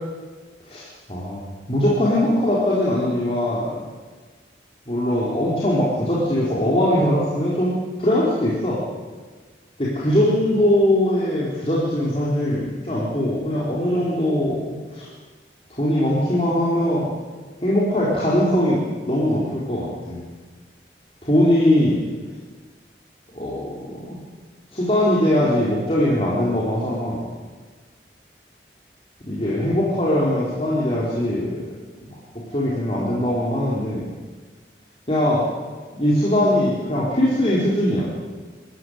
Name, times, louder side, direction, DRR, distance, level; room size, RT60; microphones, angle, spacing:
voice 1, 0.7-1.4 1.7-3.7 4.9-8.8 9.8-15.1 15.7-17.1 17.6-18.8 19.1-20.2 21.2-22.0 23.3-24.2 24.7-27.2 29.3-31.6 32.0-32.1 32.5-34.1 35.1-35.5 35.9-38.1, left 1 dB, 35° left, -7 dB, 4.4 m, -21 dB
25.5 x 14.5 x 9.7 m, 1.4 s
head